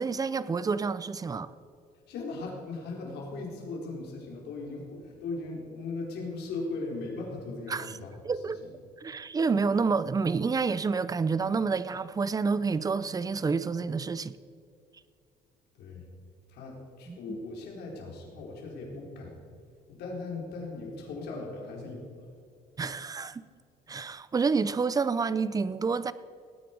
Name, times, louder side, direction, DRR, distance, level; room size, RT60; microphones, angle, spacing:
voice 1, 0.0-1.5 7.7-8.0 8.2-8.6 9.0-14.3 17.1-17.2 22.8-23.4 23.9-26.1, right 4 dB, 20° right, 0.6 m, -28 dB
voice 2, 2.1-8.2 8.6-8.7 15.7-16.0 16.5-19.4 19.9-22.3, left 3 dB, 75° left, 4.2 m, -38 dB
19.5 x 9.4 x 5.3 m
cardioid pair, 110°, 17 cm